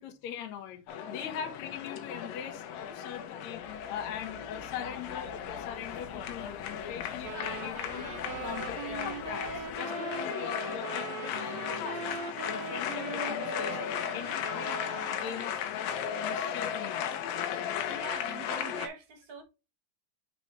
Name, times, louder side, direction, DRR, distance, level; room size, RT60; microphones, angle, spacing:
voice 1, 0.0-3.6 3.9-8.1 8.4-12.2 12.5-13.8 14.1-14.8 15.1-16.0 16.2-17.3, left 9 dB, 65° left, 2.3 m, -41 dB
sound 1, 0.9-18.9, left 8 dB, 85° left, 2.6 m, -36 dB
sound 2, 3.5-9.8, right 2 dB, 35° left, 1.4 m, -52 dB
sound 3, 7.2-15.6, right 7 dB, 90° right, 2.8 m, -41 dB
voice 2, 17.9-19.4, right 4 dB, 40° right, 1.4 m, -44 dB
8.0 x 4.2 x 3.0 m
omnidirectional pair, 3.9 m